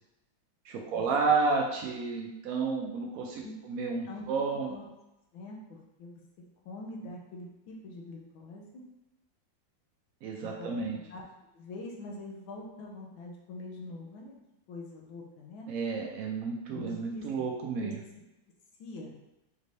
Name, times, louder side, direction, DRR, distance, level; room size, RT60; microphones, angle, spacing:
voice 1, 0.6-4.7 10.2-11.0 15.7-18.0, right 4 dB, 80° right, 0 dB, 0.8 m, -31 dB
voice 2, 5.3-6.2 6.6-8.8 10.4-10.7 11.1-11.2 11.5-14.3 14.7-15.7 16.7-17.2 17.8-17.9 18.8-19.2, left 2 dB, 85° left, -1 dB, 1.6 m, -44 dB
5.2 x 3.2 x 2.6 m, 0.94 s
omnidirectional pair, 2.1 m